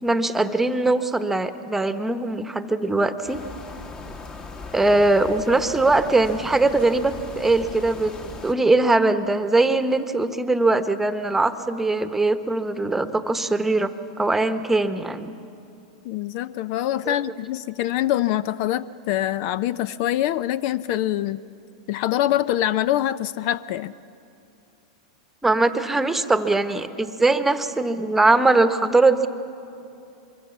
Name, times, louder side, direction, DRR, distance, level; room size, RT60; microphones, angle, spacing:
voice 1, 0.0-3.4 4.7-8.1 8.4-15.3 17.1-17.2 25.4-29.3, right 2 dB, 10° right, 10 dB, 1.1 m, -21 dB
sound 1, 3.3-8.5, left 3 dB, 25° left, 1.6 m, -38 dB
voice 2, 16.0-21.4 21.9-23.9, left 13 dB, 55° left, 17 dB, 0.5 m, -24 dB
24.0 x 23.0 x 7.2 m, 2.7 s
hypercardioid pair, 105°, 3 cm